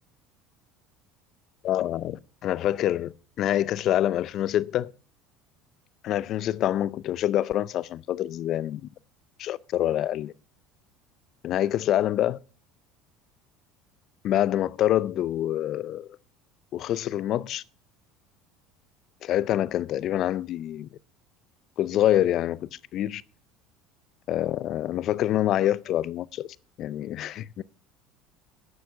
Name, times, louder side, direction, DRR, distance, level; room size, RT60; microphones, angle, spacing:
voice 1, 1.6-4.9 6.0-8.8 9.4-10.3 11.4-12.4 14.2-16.1 16.7-17.6 19.2-20.9 21.8-23.2 24.3-26.5 26.8-27.6, left 12 dB, 55° left, 0.5 m, -26 dB
9.6 x 7.0 x 7.6 m
supercardioid pair, 90°, 0 cm